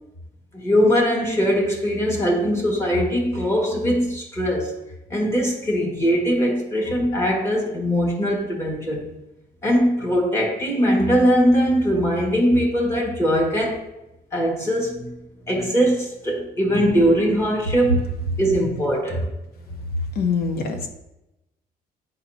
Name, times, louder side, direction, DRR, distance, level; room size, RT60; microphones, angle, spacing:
voice 1, 0.5-4.8 5.1-9.1 9.6-13.8 14.3-15.1 15.5-18.1 18.4-19.2, equal, 15° left, -1 dB, 1.7 m, -21 dB
voice 2, 20.2-20.9, left 5 dB, 70° left, 5 dB, 1.0 m, -24 dB
9.9 x 4.0 x 2.8 m, 0.92 s
cardioid pair, 150°, 16 cm